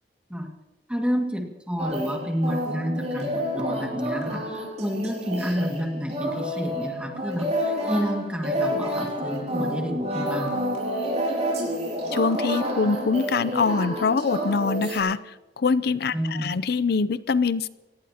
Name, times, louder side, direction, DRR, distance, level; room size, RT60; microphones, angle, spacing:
voice 1, 0.9-10.6 16.1-16.6, equal, 5° right, 1 dB, 2.0 m, -29 dB
sound 1, 1.8-15.0, equal, 40° right, 7.3 m, -29 dB
voice 2, 12.1-17.7, left 4 dB, 60° left, 16 dB, 0.5 m, -24 dB
26.5 x 18.5 x 2.9 m, 1.1 s
head